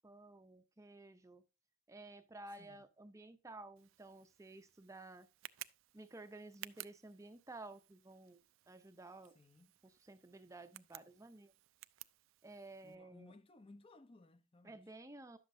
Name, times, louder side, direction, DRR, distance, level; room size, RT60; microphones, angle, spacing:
voice 1, 0.0-1.4 1.9-5.3 5.9-8.4 8.7-9.3 9.8-11.5 12.4-13.3 14.6-15.4, right 2 dB, 15° right, 0.5 m, -54 dB
voice 2, 2.5-2.8 9.3-9.7 12.8-14.9, left 2 dB, 30° left, 0.6 m, -61 dB
Tick, 3.8-12.9, right 15 dB, 75° right, 0.4 m, -57 dB
11.0 x 7.4 x 2.6 m
head